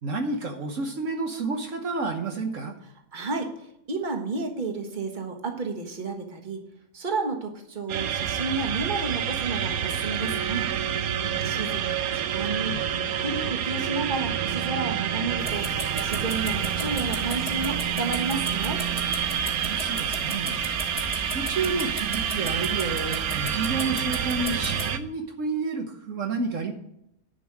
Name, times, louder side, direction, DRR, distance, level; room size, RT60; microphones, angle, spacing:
voice 1, 0.0-2.7 11.2-11.6 19.5-20.6 21.3-26.7, right 3 dB, 65° right, 3 dB, 1.4 m, -30 dB
voice 2, 3.1-6.6 6.9-10.7 11.4-15.7 16.0-18.8, right 3 dB, 35° right, 4 dB, 1.6 m, -31 dB
sound 1, 7.9-25.0, right 9 dB, 90° right, 1.2 m, -28 dB
sound 2, 15.4-24.9, right 1 dB, 5° right, 1.4 m, -36 dB
10.5 x 5.3 x 7.6 m, 0.79 s
omnidirectional pair, 1.5 m